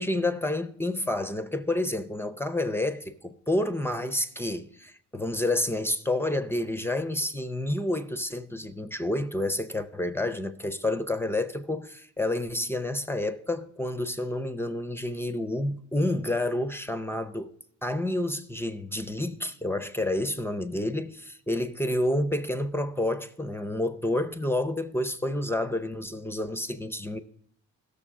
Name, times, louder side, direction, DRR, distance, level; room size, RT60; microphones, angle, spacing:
voice 1, 0.0-17.5 17.8-27.2, left 1 dB, 10° left, 0.5 m, -29 dB
15.5 x 6.7 x 3.6 m
cardioid pair, 90°, 30 cm